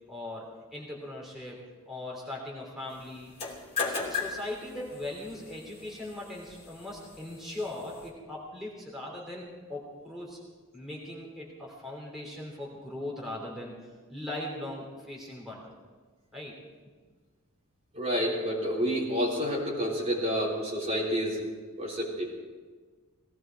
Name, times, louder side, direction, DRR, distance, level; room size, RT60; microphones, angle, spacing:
voice 1, 0.1-1.6 1.9-3.3 3.9-10.4 10.7-13.8 14.1-15.7 16.3-16.6, left 1 dB, ahead, -4 dB, 3.3 m, -39 dB
sound 1, 3.2-8.1, left 5 dB, 30° left, 3.0 m, -37 dB
voice 2, 17.9-21.4 21.8-22.3, equal, 30° right, -4 dB, 3.6 m, -29 dB
18.5 x 17.0 x 4.6 m, 1.4 s
head